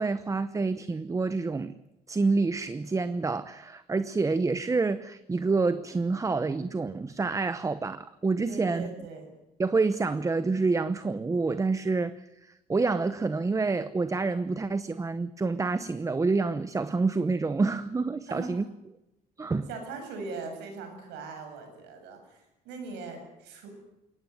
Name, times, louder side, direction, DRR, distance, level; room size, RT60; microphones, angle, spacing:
voice 1, 0.0-1.8 2.1-8.9 9.6-18.6 19.4-19.7, right 3 dB, 20° right, 0.8 m, -28 dB
voice 2, 8.5-9.2 18.3-18.5 19.7-23.7, right 4 dB, 90° right, 7.5 m, -40 dB
22.0 x 18.0 x 9.5 m
cardioid pair, 110°, 17 cm